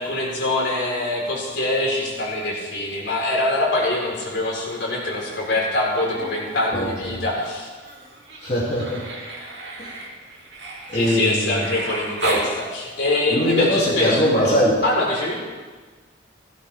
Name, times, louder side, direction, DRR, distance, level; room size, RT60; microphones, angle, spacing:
voice 1, 0.0-7.7 10.9-14.5 14.8-15.3, left 2 dB, 60° left, -4 dB, 4.7 m, -24 dB
Human voice, 5.8-6.6 6.9-12.5 14.1-14.2, right 2 dB, 60° right, 2.9 m, -33 dB
voice 2, 6.7-7.2 8.4-9.0 9.8-9.9 10.9-11.7 13.3-14.8, equal, 35° left, -8 dB, 3.2 m, -21 dB
16.5 x 15.5 x 3.7 m, 1.4 s
head